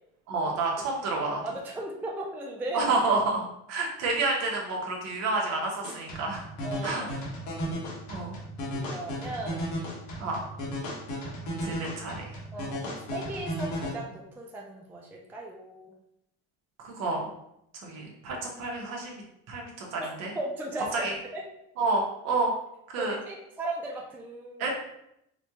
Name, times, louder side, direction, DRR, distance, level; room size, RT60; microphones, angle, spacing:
voice 1, 0.3-1.4 2.7-6.4 6.8-7.1 8.1-8.4 10.2-10.4 11.6-12.2 16.8-17.2 17.8-19.2 19.5-20.3 20.9-21.1 21.8-22.5 22.9-23.2 24.6-24.7, right 3 dB, 55° right, 0 dB, 1.0 m, -29 dB
voice 2, 1.4-2.8 6.6-7.7 8.7-9.8 12.5-15.9 20.0-21.4 23.0-24.7, right 2 dB, 5° right, -1 dB, 0.3 m, -37 dB
sound 1, 5.8-13.9, equal, 70° left, 1.3 m, -35 dB
4.2 x 2.3 x 2.8 m, 0.79 s
cardioid pair, 125°, 31 cm